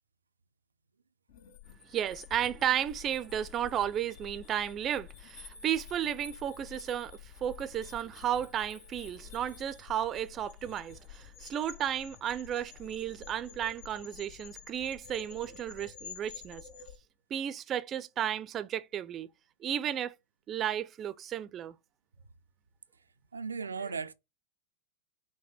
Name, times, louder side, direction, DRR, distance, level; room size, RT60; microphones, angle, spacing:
sound 1, 1.3-17.0, left 8 dB, 60° left, 1.1 m, -50 dB
voice 1, 1.8-16.7 17.3-19.3 19.6-20.1 20.5-21.7, right 10 dB, 30° right, 0.5 m, -33 dB
voice 2, 23.3-24.1, right 5 dB, 85° right, 0.4 m, -36 dB
5.8 x 2.2 x 4.2 m
figure-of-eight pair, 95°, 0 cm